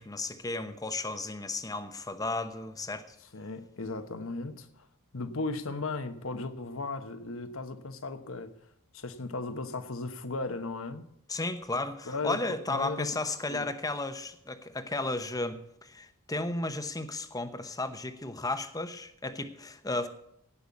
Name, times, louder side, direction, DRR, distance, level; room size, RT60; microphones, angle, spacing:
voice 1, 0.0-3.2 11.3-20.1, left 2 dB, 15° left, 0.9 m, -34 dB
voice 2, 3.3-4.8 5.1-8.5 8.9-11.1 12.1-12.4 12.7-13.1 13.5-13.7, left 3 dB, 65° left, 1.1 m, -36 dB
17.0 x 5.7 x 8.3 m
head